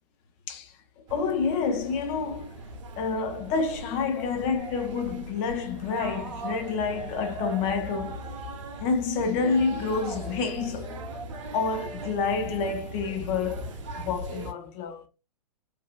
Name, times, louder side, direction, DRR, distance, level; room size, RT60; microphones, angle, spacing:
voice 1, 0.5-2.6 3.0-8.2 8.8-11.0 11.5-15.1, left 5 dB, 20° left, 0.4 m, -28 dB
sound 1, 1.1-14.5, right 2 dB, 50° right, 0.7 m, -39 dB
3.1 x 2.2 x 2.2 m
figure-of-eight pair, 115°, 21 cm